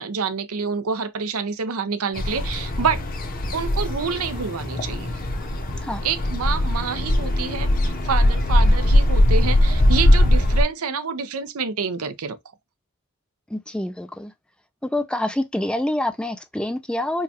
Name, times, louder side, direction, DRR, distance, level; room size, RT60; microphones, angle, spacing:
voice 1, 0.0-3.0 3.5-5.2 6.0-12.4, right 5 dB, 80° right, 0.6 m, -27 dB
sound 1, 2.2-10.6, left 1 dB, 40° left, 0.8 m, -20 dB
voice 2, 13.5-14.3 14.9-17.2, left 1 dB, 5° left, 0.3 m, -26 dB
4.6 x 2.3 x 2.8 m
head